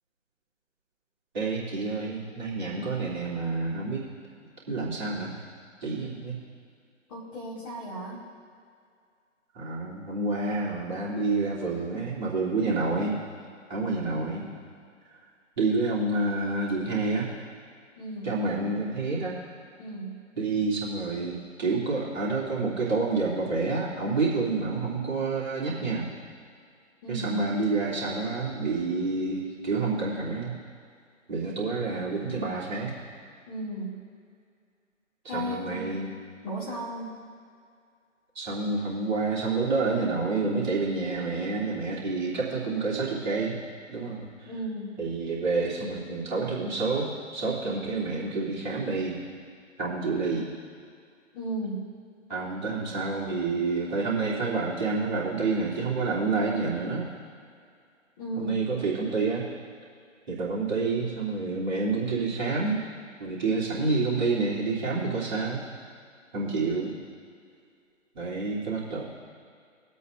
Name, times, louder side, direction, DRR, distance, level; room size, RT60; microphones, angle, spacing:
voice 1, 1.3-4.0 4.7-5.3 5.8-6.4 9.5-13.2 13.7-14.4 15.6-17.3 18.2-19.4 20.4-26.1 27.1-30.5 31.3-32.9 35.2-36.1 38.3-43.6 43.9-44.5 45.0-49.2 49.8-50.5 52.3-57.1 58.4-59.5 60.3-62.8 63.2-65.6 66.3-66.9 68.1-69.0, right 3 dB, 35° right, -7 dB, 2.7 m, -28 dB
voice 2, 7.1-8.2 17.9-18.4 19.8-20.1 27.0-27.4 33.5-34.0 35.3-35.9 36.4-37.1 44.4-45.0 51.3-51.8 58.2-58.6, right 1 dB, 15° left, -8 dB, 1.9 m, -35 dB
22.0 x 8.3 x 2.4 m, 2.2 s
figure-of-eight pair, 145°, 39 cm